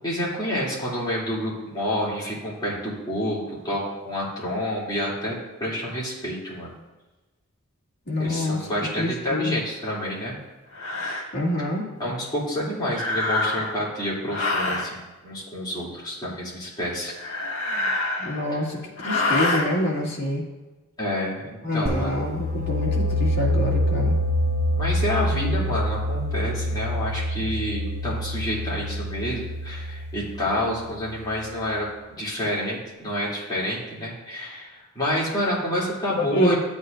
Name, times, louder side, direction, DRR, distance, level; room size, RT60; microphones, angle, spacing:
voice 1, 0.0-6.7 8.2-10.3 12.0-17.1 21.0-22.1 24.7-36.5, equal, 20° left, -7 dB, 2.9 m, -28 dB
voice 2, 8.1-8.7 9.0-9.6 11.3-11.9 18.2-20.4 21.6-24.1 36.2-36.5, left 1 dB, 55° left, -4 dB, 2.3 m, -26 dB
sound 1, 9.8-10.0 10.7-11.3 12.9-13.8 14.3-14.9 17.1-18.5 19.0-19.7, left 2 dB, 85° left, 1.8 m, -26 dB
sound 2, 21.9-31.4, equal, 55° right, 2.9 m, -26 dB
13.0 x 8.2 x 2.6 m, 1.1 s
head